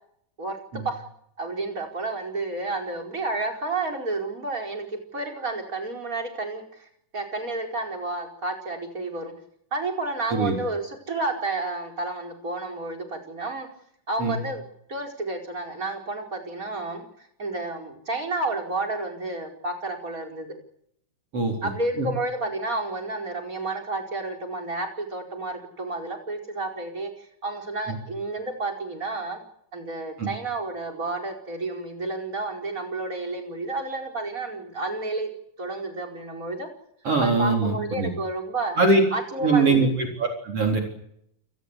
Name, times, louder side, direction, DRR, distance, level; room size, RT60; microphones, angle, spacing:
voice 1, 0.4-1.0 1.4-6.9 7.1-9.3 9.7-13.7 14.1-14.6 14.9-17.0 17.4-20.5 21.6-29.4 29.7-35.3 35.6-36.7 37.2-38.8 39.1-39.9, right 2 dB, 25° right, 3 dB, 5.0 m, -31 dB
voice 2, 37.0-38.1 38.8-39.0 39.4-40.8, right 3 dB, 45° right, 2 dB, 4.9 m, -22 dB
28.5 x 18.5 x 8.2 m, 0.73 s
omnidirectional pair, 3.6 m